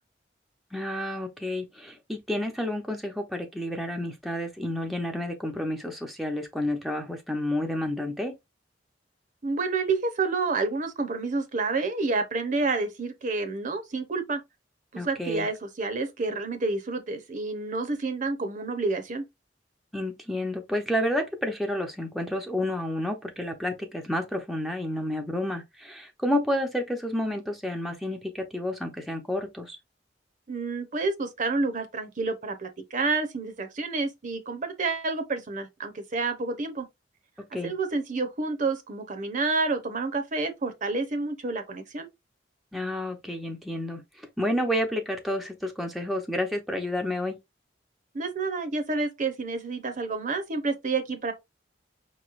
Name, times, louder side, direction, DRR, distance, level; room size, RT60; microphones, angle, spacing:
voice 1, 0.7-8.3 14.9-15.5 19.9-29.8 37.5-37.7 42.7-47.4, left 1 dB, ahead, 0.6 m, -30 dB
voice 2, 9.4-14.4 14.9-19.2 30.5-36.9 37.6-42.1 48.1-51.3, right 3 dB, 45° right, 0.8 m, -29 dB
5.2 x 3.1 x 2.4 m
head